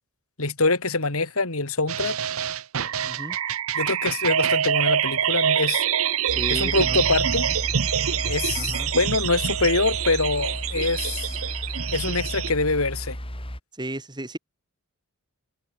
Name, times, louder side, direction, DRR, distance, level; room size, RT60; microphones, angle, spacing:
voice 1, 0.4-2.2 3.7-5.8 6.5-7.5 8.2-11.4 11.9-13.2, left 3 dB, 70° left, 3.3 m, -24 dB
sound 1, 1.9-12.5, right 9 dB, 65° right, 0.8 m, -26 dB
voice 2, 3.1-3.4 6.3-7.0 8.5-8.9 13.8-14.4, right 1 dB, 20° right, 3.2 m, -34 dB
sound 2, 6.3-13.6, equal, 25° left, 5.8 m, -33 dB
head